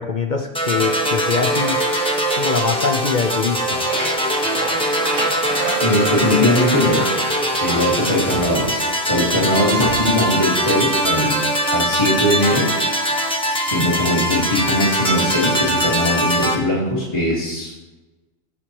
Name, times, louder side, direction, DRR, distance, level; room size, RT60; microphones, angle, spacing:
voice 1, 0.0-1.8 2.3-3.9, left 5 dB, 45° left, 4 dB, 0.7 m, -23 dB
sound 1, 0.5-16.5, right 1 dB, 5° left, 1.1 m, -21 dB
sound 2, 3.5-7.3 7.7-9.0 9.8-10.3, right 2 dB, 85° right, 2.0 m, -31 dB
voice 2, 5.8-7.2 7.6-11.5 11.7-12.8 13.6-17.7, left 1 dB, 25° left, -6 dB, 1.8 m, -20 dB
18.0 x 6.3 x 3.0 m, 1.1 s
omnidirectional pair, 1.3 m